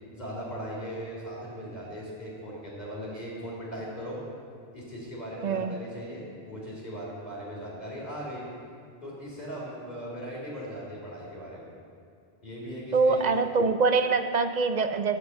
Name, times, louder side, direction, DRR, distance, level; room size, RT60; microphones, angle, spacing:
voice 1, 0.1-4.2 4.7-8.5 9.0-11.7 12.4-13.4, equal, 45° left, -5 dB, 3.2 m, -38 dB
voice 2, 5.4-5.8 12.9-15.2, right 4 dB, 50° right, 9 dB, 0.6 m, -24 dB
12.0 x 7.7 x 8.1 m, 2.4 s
omnidirectional pair, 1.0 m